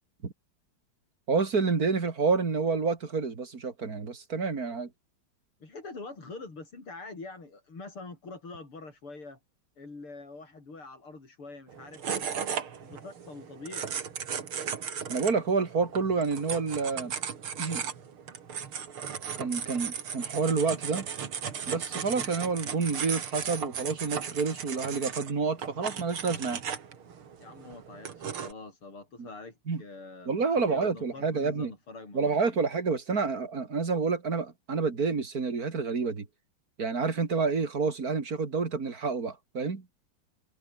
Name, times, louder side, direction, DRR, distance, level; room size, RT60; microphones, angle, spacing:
voice 1, 1.3-4.9 15.1-17.1 17.6-17.8 19.4-21.1 21.7-26.6 29.2-29.3 29.7-29.8 30.3-31.7 32.1-36.3 36.8-39.8, right 4 dB, 45° right, 3.0 m, -29 dB
voice 2, 5.6-9.4 9.8-12.3 12.8-14.0 27.4-32.7, left 3 dB, 80° left, 6.6 m, -45 dB
sound 1, 11.7-28.5, right 7 dB, 75° right, 3.0 m, -36 dB
omnidirectional pair, 2.4 m